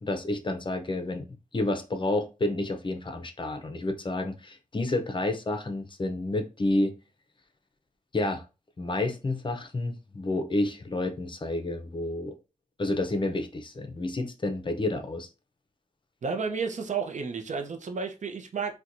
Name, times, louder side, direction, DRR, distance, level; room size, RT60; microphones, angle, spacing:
voice 1, 0.0-1.2 1.5-6.9 8.1-8.4 8.8-12.3 12.8-15.3, left 2 dB, 35° left, 0.6 m, -30 dB
voice 2, 16.2-18.8, right 5 dB, 55° right, 0.6 m, -32 dB
4.3 x 2.2 x 2.5 m
wide cardioid pair, 110°, 14 cm